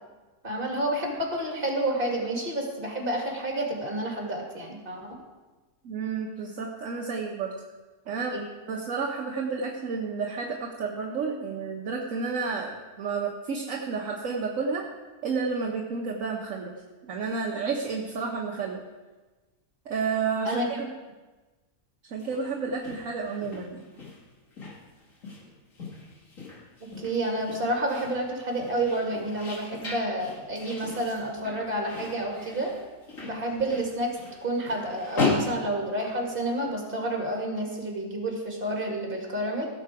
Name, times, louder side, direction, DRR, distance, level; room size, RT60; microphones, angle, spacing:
voice 1, 0.4-5.1 8.3-8.4 20.4-20.8 27.0-32.7 33.2-39.7, right 1 dB, 35° right, 0 dB, 2.5 m, -29 dB
voice 2, 5.8-7.5 8.1-8.4 8.7-14.8 15.2-16.7 17.1-18.8 19.9-20.9 22.1-23.8, right 5 dB, 65° right, 0 dB, 1.3 m, -31 dB
sound 1, 22.1-36.6, left 3 dB, 60° left, 2.5 m, -37 dB
16.5 x 6.8 x 4.8 m, 1.2 s
omnidirectional pair, 1.5 m